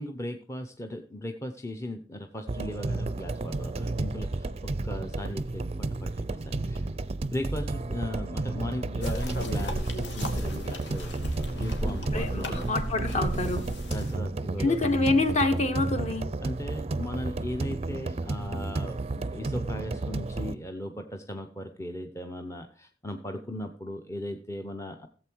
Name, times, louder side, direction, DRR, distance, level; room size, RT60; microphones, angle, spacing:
voice 1, 0.0-6.9 7.3-12.7 13.9-14.8 16.4-25.1, left 1 dB, 15° left, 4 dB, 0.8 m, -37 dB
sound 1, 2.5-20.6, right 2 dB, 35° right, 0.5 m, -32 dB
sound 2, 9.0-14.2, equal, 70° left, 2.2 m, -35 dB
voice 2, 12.1-13.7 14.6-16.3, left 2 dB, 40° left, 7 dB, 1.5 m, -26 dB
15.0 x 7.8 x 4.6 m, 0.40 s
head